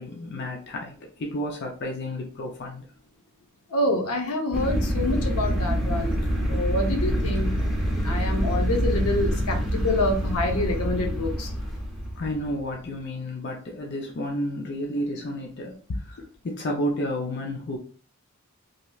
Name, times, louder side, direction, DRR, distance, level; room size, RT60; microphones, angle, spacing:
voice 1, 0.0-2.9 12.2-16.2 16.4-17.8, equal, 50° left, 1 dB, 0.5 m, -31 dB
voice 2, 3.7-6.2 6.4-7.5 8.0-11.5, left 1 dB, 85° left, 2 dB, 0.8 m, -27 dB
sound 1, 4.5-12.7, equal, ahead, 0.6 m, -26 dB
3.1 x 2.8 x 2.3 m, 0.41 s
head